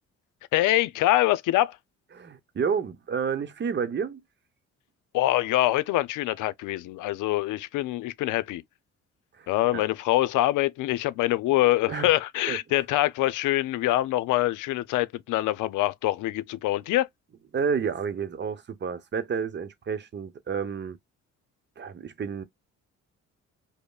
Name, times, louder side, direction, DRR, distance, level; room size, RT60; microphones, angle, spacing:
voice 1, 0.5-1.8 5.1-8.6 9.5-17.1, left 16 dB, 90° left, 0.5 m, -24 dB
voice 2, 2.1-4.2 9.3-9.8 11.9-12.1 12.5-12.6 17.5-21.0 21.8-22.4, right 6 dB, 35° right, 0.8 m, -30 dB
5.2 x 2.1 x 2.3 m
cardioid pair, 90°, 30 cm